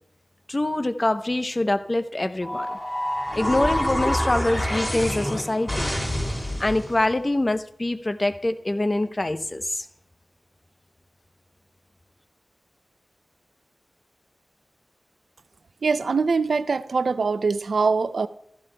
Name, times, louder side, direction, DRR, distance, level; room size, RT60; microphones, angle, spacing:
voice 1, 0.5-2.8 3.3-5.9 6.6-9.9, left 2 dB, 35° left, 10 dB, 0.7 m, -25 dB
sound 1, 2.4-7.0, equal, 15° left, 3.7 m, -27 dB
voice 2, 15.8-18.3, right 4 dB, 80° right, 14 dB, 0.4 m, -23 dB
15.5 x 14.5 x 2.3 m, 0.75 s
cardioid pair, 45°, 0 cm